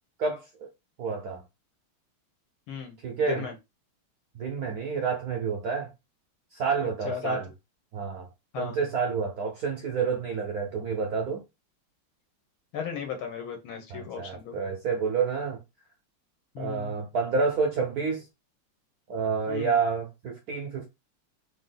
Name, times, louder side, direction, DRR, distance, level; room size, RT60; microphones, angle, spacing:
voice 1, 0.2-0.7 1.0-1.4 3.0-3.4 4.4-5.9 6.5-7.5 7.9-8.3 8.5-11.4 13.9-15.6 16.6-18.2 19.1-20.9, right 5 dB, 70° right, 0.8 m, -29 dB
voice 2, 3.2-3.5 7.1-7.4 8.5-8.8 12.7-14.6 16.6-16.9 19.5-19.7, left 7 dB, 70° left, 1.7 m, -35 dB
3.6 x 2.7 x 3.7 m
omnidirectional pair, 2.4 m